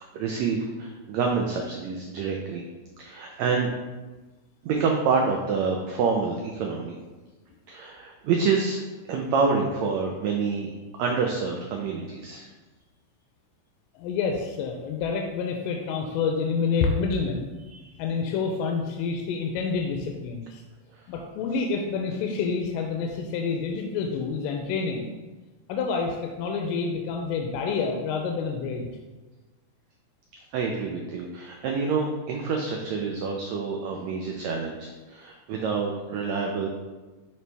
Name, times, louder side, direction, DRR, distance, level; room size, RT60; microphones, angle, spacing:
voice 1, 0.1-2.6 3.0-3.7 4.6-7.0 7.7-8.8 9.1-10.7 11.0-12.5 17.7-17.9 20.9-21.0 30.5-36.7, right 5 dB, 85° right, 1 dB, 1.5 m, -27 dB
voice 2, 14.0-17.5 18.0-20.6 21.1-25.1 25.7-28.9, left 5 dB, 85° left, 2 dB, 2.2 m, -28 dB
9.2 x 3.1 x 3.4 m, 1.2 s
omnidirectional pair, 3.8 m